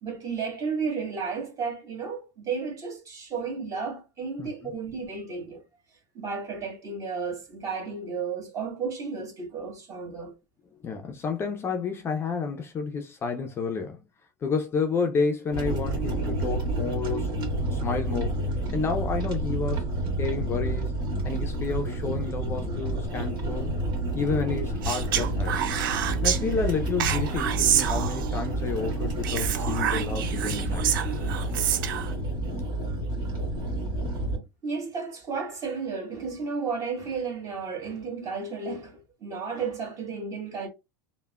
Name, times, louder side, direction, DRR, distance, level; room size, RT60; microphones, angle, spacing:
voice 1, 0.0-5.6 6.1-10.3 34.6-40.7, right 5 dB, 30° right, 1.2 m, -33 dB
voice 2, 4.4-4.7 10.8-14.0 14.4-17.3 17.7-18.4 18.7-19.9 20.2-21.0 21.2-23.7 24.1-25.6 26.2-30.8, left 5 dB, 25° left, 0.4 m, -30 dB
sound 1, 15.5-34.4, right 2 dB, 50° right, 1.7 m, -29 dB
Speech, 24.8-26.4 27.0-28.4 29.2-32.1, right 10 dB, 85° right, 0.4 m, -27 dB
3.3 x 2.1 x 2.2 m
supercardioid pair, 130°, 11 cm